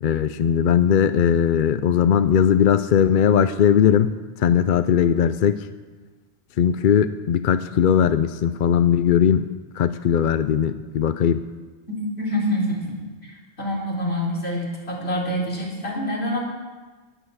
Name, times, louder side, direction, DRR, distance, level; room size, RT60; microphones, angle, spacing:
voice 1, 0.0-4.1 4.4-5.6 6.6-9.5 9.8-11.4, left 8 dB, 60° left, 12 dB, 0.6 m, -19 dB
voice 2, 12.2-12.8 13.3-16.4, equal, 80° left, -5 dB, 4.2 m, -26 dB
11.0 x 10.0 x 8.0 m, 1.3 s
omnidirectional pair, 1.1 m